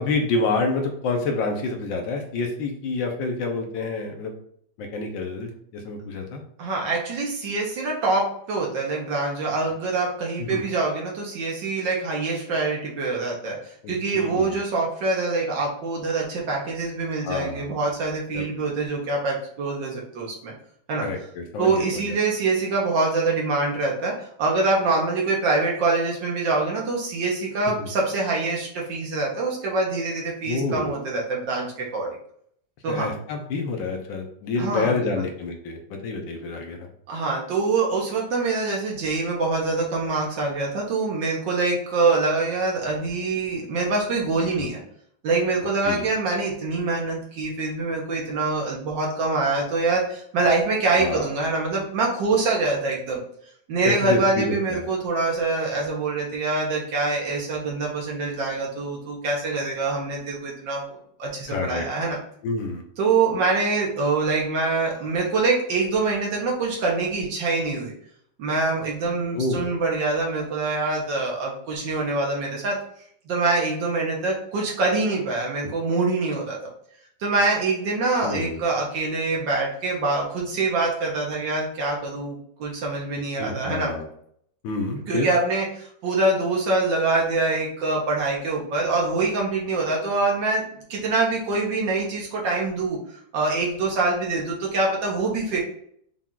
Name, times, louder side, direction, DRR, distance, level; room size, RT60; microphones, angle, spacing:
voice 1, 0.0-4.3 4.8-6.4 10.4-10.6 13.8-14.6 17.2-17.7 18.3-18.4 21.0-22.2 27.7-27.9 30.4-31.0 32.9-36.9 44.6-44.7 45.8-46.1 51.0-51.3 53.8-54.9 61.5-61.9 62.4-62.8 69.3-69.7 78.2-78.6 83.4-84.1 84.6-85.3, left 3 dB, 80° left, 3 dB, 1.5 m, -28 dB
voice 2, 6.6-20.5 20.9-21.0 21.6-32.1 32.8-33.1 34.6-35.3 37.1-44.8 45.2-53.2 53.7-62.2 63.0-67.9 68.4-72.8 73.3-76.6 77.2-83.9 85.1-90.6 90.9-95.6, right 3 dB, 75° right, -2 dB, 1.6 m, -25 dB
5.8 x 2.4 x 3.7 m, 0.66 s
omnidirectional pair, 2.1 m